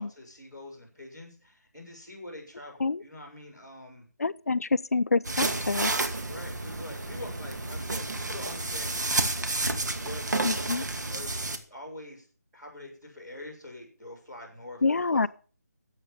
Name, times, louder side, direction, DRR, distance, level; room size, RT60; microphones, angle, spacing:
voice 1, 0.0-4.0 6.2-9.0 9.8-12.3 12.5-15.3, left 1 dB, 10° right, 4.9 m, -44 dB
voice 2, 4.2-5.9 10.4-10.8 14.8-15.3, left 3 dB, 60° left, 0.5 m, -26 dB
sound 1, 5.2-11.6, right 2 dB, 85° right, 2.3 m, -30 dB
12.5 x 8.1 x 7.2 m
figure-of-eight pair, 180°, 9 cm